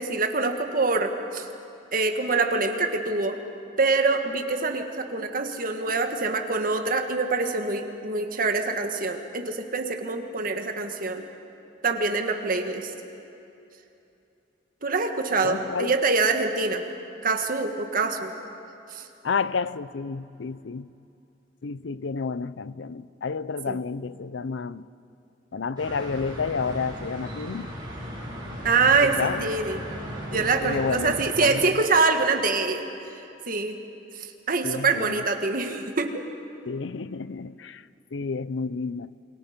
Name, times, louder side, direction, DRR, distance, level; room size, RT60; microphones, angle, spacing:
voice 1, 0.0-1.5 1.9-3.4 3.8-11.2 11.8-12.9 14.8-16.8 17.2-18.3 18.9-19.0 23.7-23.8 28.6-29.8 30.3-32.8 33.4-33.8 34.1-36.2, right 3 dB, 50° right, 1.7 m, -25 dB
voice 2, 15.4-15.9 19.2-20.9 21.6-24.9 25.5-27.7 28.8-28.9 29.2-29.5 30.3-31.7 34.6-35.2 36.7-37.8 38.1-39.2, left 5 dB, 80° left, 0.5 m, -30 dB
sound 1, 25.8-31.5, equal, 25° right, 6.9 m, -37 dB
28.0 x 23.0 x 5.2 m
head